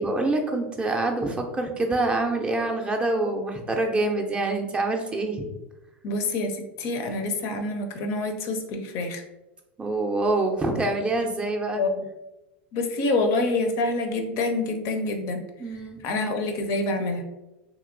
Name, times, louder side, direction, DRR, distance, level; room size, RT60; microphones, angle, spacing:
voice 1, 0.0-5.5 9.8-11.8 15.6-16.0, right 2 dB, 15° right, 2 dB, 0.5 m, -26 dB
voice 2, 6.0-9.2 11.8-12.0 12.7-15.4 16.0-17.2, left 2 dB, 50° left, 6 dB, 0.5 m, -27 dB
2.8 x 2.8 x 2.5 m, 0.99 s
hypercardioid pair, 90°, 6 cm